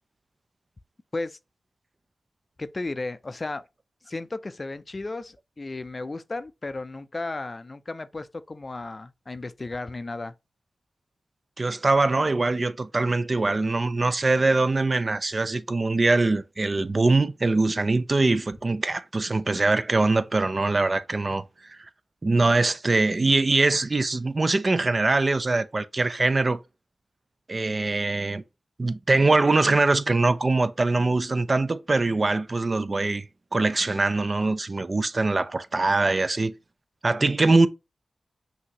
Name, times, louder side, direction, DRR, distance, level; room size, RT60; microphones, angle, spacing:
voice 1, 2.6-3.6 4.0-10.3, left 2 dB, 35° left, 0.4 m, -34 dB
voice 2, 11.6-21.8 22.2-26.6 27.5-28.4 28.8-33.2 33.5-36.5 37.0-37.7, right 3 dB, 40° right, 0.4 m, -23 dB
5.8 x 2.7 x 2.9 m
wide cardioid pair, 75°, 0 cm